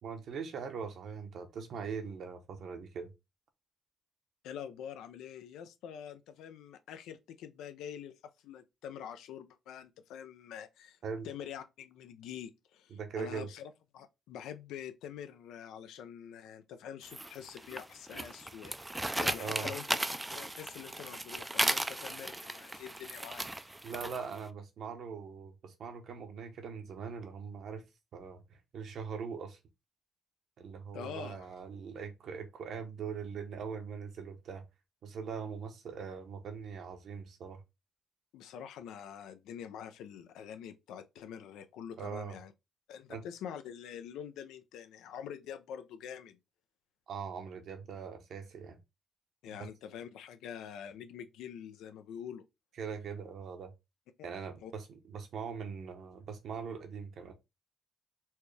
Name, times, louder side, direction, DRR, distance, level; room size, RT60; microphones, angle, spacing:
voice 1, 0.0-3.1 11.0-11.3 12.9-13.5 19.4-19.7 23.8-27.8 28.1-29.6 30.6-34.7 35.0-37.6 42.0-42.4 43.1-43.3 47.1-48.8 52.8-53.7 54.2-57.3, right 6 dB, 65° right, 0.9 m, -41 dB
voice 2, 4.4-11.0 11.2-20.0 20.3-23.4 30.9-31.5 38.3-42.5 42.9-46.4 49.4-52.4 54.2-54.7, left 8 dB, 90° left, 0.5 m, -46 dB
sound 1, 17.1-24.4, right 1 dB, 10° right, 0.3 m, -36 dB
4.3 x 2.3 x 3.2 m
cardioid pair, 90°, 0 cm